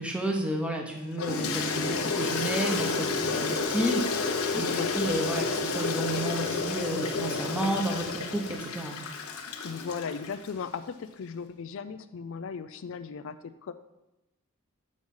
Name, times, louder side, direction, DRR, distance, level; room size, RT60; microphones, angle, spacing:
voice 1, 0.0-4.7 4.9-9.0, right 1 dB, 5° right, 1 dB, 0.9 m, -31 dB
Toilet flush, 1.2-10.5, left 4 dB, 80° left, 0.9 m, -30 dB
voice 2, 9.6-13.4 13.6-13.7, left 6 dB, 60° left, 11 dB, 0.4 m, -37 dB
6.4 x 6.3 x 5.5 m, 0.94 s
head